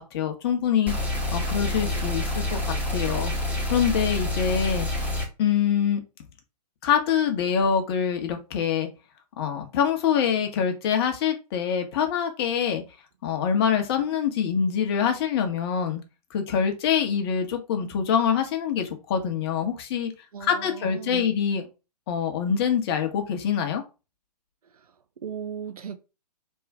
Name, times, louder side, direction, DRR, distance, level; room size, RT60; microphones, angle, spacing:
voice 1, 0.0-3.3 3.7-4.9 5.4-6.0 6.8-8.9 9.4-12.8 13.2-16.0 16.3-20.1 20.4-21.6 22.1-23.8, left 7 dB, 35° left, 1.1 m, -25 dB
sound 1, 0.9-5.3, left 1 dB, 5° right, 1.4 m, -27 dB
voice 2, 20.3-21.3 25.2-26.0, right 8 dB, 60° right, 0.7 m, -36 dB
3.6 x 3.0 x 4.6 m
figure-of-eight pair, 125°, 21 cm